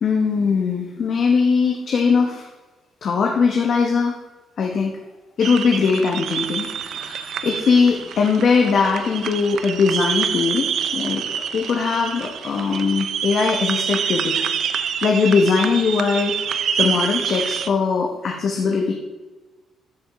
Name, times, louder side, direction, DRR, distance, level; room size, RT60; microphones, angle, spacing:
voice 1, 0.0-2.5 3.0-4.2 4.6-4.9 5.4-11.2 11.5-14.4 15.0-16.4 16.8-18.9, left 5 dB, 60° left, 1 dB, 1.1 m, -20 dB
sound 1, 5.4-17.7, right 8 dB, 65° right, 0.6 m, -27 dB
13.5 x 5.2 x 3.6 m, 1.2 s
cardioid pair, 90°, 0 cm